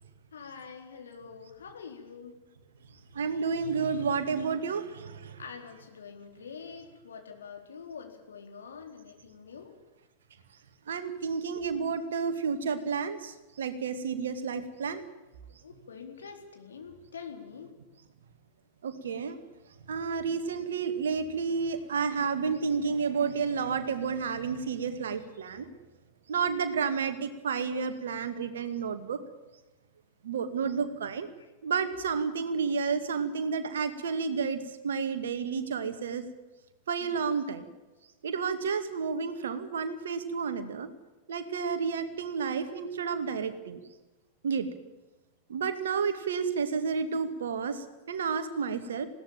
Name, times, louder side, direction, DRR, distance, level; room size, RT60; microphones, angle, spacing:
voice 1, 0.3-2.4 5.4-9.7 15.6-17.7 25.6-25.7 31.0-31.1 31.4-31.5 33.0-33.1 37.0-37.2, left 6 dB, 70° left, 3 dB, 4.1 m, -46 dB
voice 2, 3.1-5.4 10.9-15.0 18.8-19.4 19.9-25.7 26.3-29.2 30.2-31.3 31.6-36.2 36.9-37.7 38.2-40.9 41.3-43.8 44.4-44.7 45.5-49.1, right 5 dB, 65° right, 9 dB, 2.3 m, -31 dB
20.5 x 17.0 x 9.0 m, 1.1 s
figure-of-eight pair, 90°, 0 cm